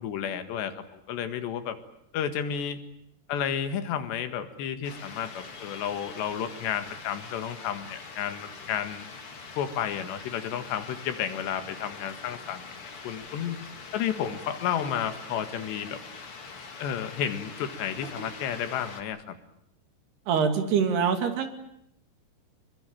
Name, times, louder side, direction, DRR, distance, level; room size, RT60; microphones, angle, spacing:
voice 1, 0.0-1.8 2.1-2.8 3.3-9.1 9.6-13.6 13.9-16.0 16.8-19.4, left 9 dB, 85° left, 9 dB, 4.0 m, -32 dB
sound 1, 4.8-19.0, left 4 dB, 35° left, 2.9 m, -43 dB
voice 2, 20.3-21.5, right 6 dB, 70° right, 7 dB, 4.4 m, -24 dB
26.0 x 22.5 x 9.0 m, 0.74 s
omnidirectional pair, 4.8 m